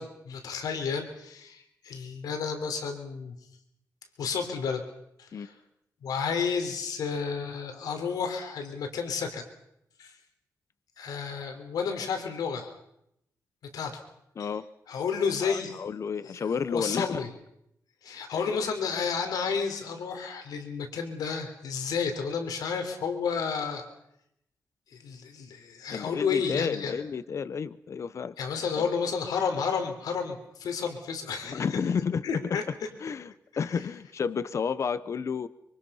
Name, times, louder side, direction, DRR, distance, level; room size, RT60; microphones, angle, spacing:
voice 1, 0.0-3.3 4.2-4.8 5.2-5.5 6.0-9.4 10.0-10.1 11.0-12.7 13.7-14.0 14.4-14.5 14.9-15.8 16.2-17.3 18.0-23.9 24.9-27.0 28.4-31.6 32.2-32.6 33.7-33.8, left 6 dB, 90° left, 5 dB, 3.5 m, -31 dB
voice 2, 15.4-17.2 18.4-18.5 25.9-28.3 28.8-28.9 31.4-32.6 33.0-35.5, left 6 dB, 50° left, 15 dB, 0.9 m, -31 dB
25.5 x 23.5 x 5.7 m, 0.76 s
cardioid pair, 100°, 6 cm